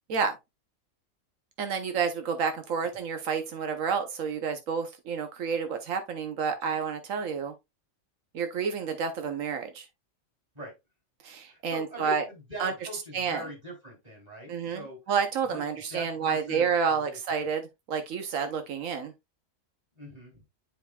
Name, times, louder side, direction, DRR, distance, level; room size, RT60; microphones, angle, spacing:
voice 1, 1.6-7.5 8.3-9.8 11.2-12.2 12.6-12.7 13.1-13.4 14.5-19.1, right 6 dB, 90° right, 1.3 m, -30 dB
voice 2, 11.5-15.0 15.5-17.2 17.4-17.5 19.9-20.4, equal, 30° right, 3.2 m, -41 dB
9.0 x 5.1 x 2.3 m
omnidirectional pair, 1.3 m